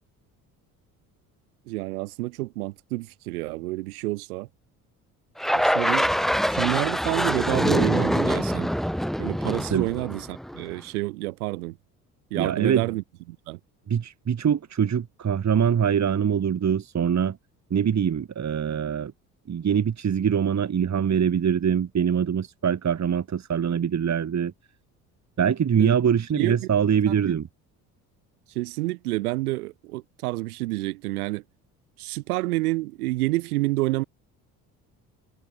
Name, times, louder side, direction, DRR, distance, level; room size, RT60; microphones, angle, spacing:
voice 1, 1.7-4.5 5.5-6.1 6.5-8.7 9.2-11.8 12.3-13.6 25.8-26.0 26.3-26.6 27.2-27.3 28.6-31.4 32.0-34.0, right 20 dB, 80° right, 5.5 m, -28 dB
sound 1, 5.4-10.7, equal, ahead, 4.3 m, -24 dB
voice 2, 12.3-12.9 13.9-17.4 17.7-19.1 19.5-24.5 25.4-27.5, right 8 dB, 40° right, 2.8 m, -23 dB
hypercardioid pair, 60°, 44 cm